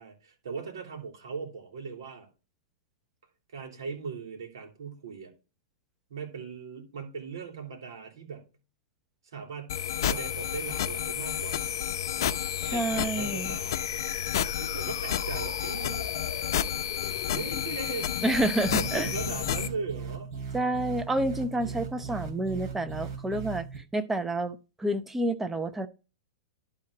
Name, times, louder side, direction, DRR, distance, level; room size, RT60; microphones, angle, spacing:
voice 1, 0.0-2.3 3.5-5.3 6.1-8.5 9.2-11.7 12.6-13.8 14.6-16.5 17.3-18.2 18.7-20.3 21.6-21.9, right 5 dB, 75° right, 3.5 m, -39 dB
sound 1, 9.7-19.7, left 10 dB, 65° left, 0.7 m, -30 dB
voice 2, 12.6-13.6 18.2-19.1 20.5-25.9, right 1 dB, 10° right, 0.8 m, -29 dB
sound 2, 18.6-23.8, right 6 dB, 60° right, 3.7 m, -38 dB
12.0 x 4.3 x 3.9 m
hypercardioid pair, 125°, 2 cm